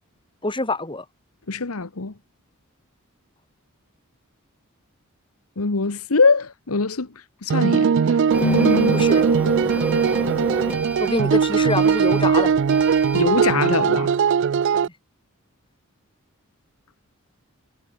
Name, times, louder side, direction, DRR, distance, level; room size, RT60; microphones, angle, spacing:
voice 1, 0.4-1.0 8.9-9.2 11.0-12.6 14.8-14.9, left 2 dB, 25° left, 6.3 m, -25 dB
voice 2, 1.5-2.1 5.6-7.1 7.4-9.0 13.1-14.2, left 4 dB, 75° left, 1.2 m, -22 dB
sound 1, 7.5-14.9, right 6 dB, 55° right, 0.4 m, -19 dB
Printer, 8.3-13.3, right 1 dB, 5° right, 4.9 m, -31 dB
head